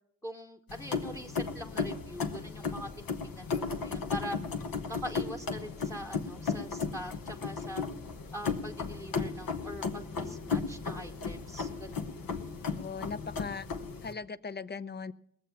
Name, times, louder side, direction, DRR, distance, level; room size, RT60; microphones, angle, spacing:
voice 1, 0.2-4.4 4.9-7.9 8.3-12.1, equal, 10° left, 6 dB, 1.0 m, -43 dB
sound 1, 0.7-14.1, left 5 dB, 75° left, 1.1 m, -35 dB
voice 2, 12.8-13.7 14.0-15.1, left 5 dB, 30° left, 16 dB, 0.6 m, -39 dB
19.5 x 7.3 x 5.8 m, 0.76 s
supercardioid pair, 40°, 35 cm